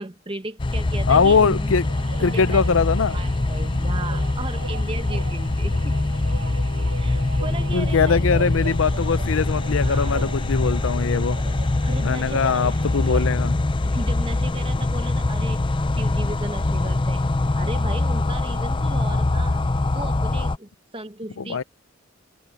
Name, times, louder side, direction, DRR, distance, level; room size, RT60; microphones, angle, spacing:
voice 1, 0.0-1.7 2.2-2.6 3.1-6.0 6.8-8.5 9.8-10.2 11.8-12.6 13.8-15.7 16.0-17.3 17.5-19.6 19.9-21.6, right 2 dB, 25° right, 1.4 m, -35 dB
sound 1, 0.6-20.6, left 2 dB, 25° left, 0.5 m, -23 dB
voice 2, 1.1-1.8 2.2-3.2 7.7-11.4 12.0-13.6 21.4-21.6, left 5 dB, 85° left, 0.6 m, -21 dB
sound 2, 1.2-13.3, right 4 dB, 70° right, 0.8 m, -39 dB
head